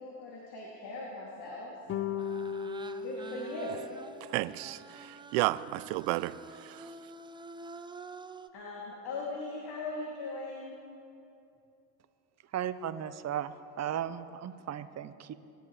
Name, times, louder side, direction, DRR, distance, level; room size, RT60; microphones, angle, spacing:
voice 1, 0.0-1.7 3.0-3.8 8.5-10.8, left 2 dB, 55° left, 2.8 m, -39 dB
sound 1, 1.9-4.4, left 7 dB, 30° left, 0.7 m, -37 dB
sound 2, 2.2-8.5, right 3 dB, 10° right, 0.5 m, -48 dB
voice 2, 4.3-6.9, right 18 dB, 70° right, 0.6 m, -32 dB
voice 3, 12.5-15.3, right 10 dB, 35° right, 0.8 m, -36 dB
25.5 x 11.5 x 3.3 m
hypercardioid pair, 80°, 46 cm